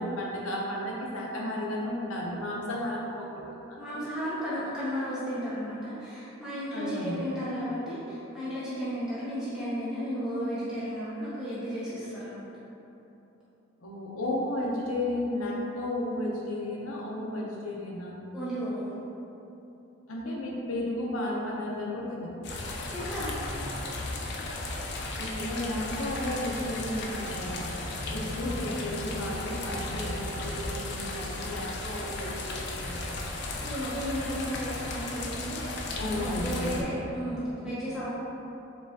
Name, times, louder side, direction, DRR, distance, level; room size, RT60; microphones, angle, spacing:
voice 1, 0.0-4.1 6.7-7.2 13.8-18.2 20.1-22.3 25.1-27.7 28.1-33.4 36.0-37.2, left 1 dB, 90° left, -3 dB, 0.7 m, -33 dB
voice 2, 3.8-12.5 18.3-18.9 22.9-23.3 33.6-35.7 36.1-38.1, equal, 5° right, -11 dB, 0.6 m, -34 dB
sound 1, 22.4-36.8, left 2 dB, 55° left, 0.4 m, -35 dB
4.8 x 2.4 x 3.5 m, 3.0 s
head